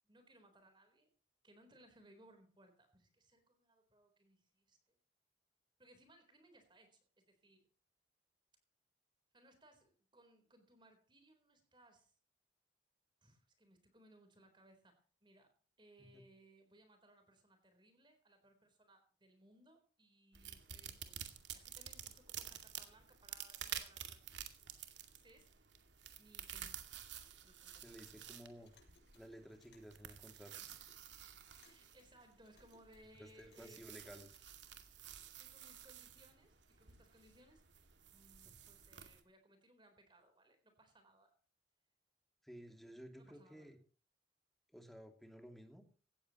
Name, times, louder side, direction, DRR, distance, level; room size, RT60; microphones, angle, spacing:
voice 1, 0.0-1.1 1.4-5.0 5.8-7.7 9.3-12.1 13.2-15.5 15.8-21.3 21.5-24.3 24.7-24.8 25.1-25.5 26.2-26.9 27.4-28.0 28.6-28.7 31.6-34.3 35.4-37.6 38.1-41.3 43.2-43.8, right 1 dB, 25° right, 7 dB, 3.9 m, -66 dB
sound 1, 20.3-39.2, right 9 dB, 80° right, 2.3 m, -51 dB
Clock, 26.9-34.7, left 4 dB, 90° left, 6.3 m, -74 dB
voice 2, 27.8-28.7 29.1-30.5 33.4-34.3 42.4-43.8 44.7-45.8, equal, ahead, 5 dB, 2.6 m, -55 dB
17.5 x 14.5 x 3.0 m, 0.40 s
head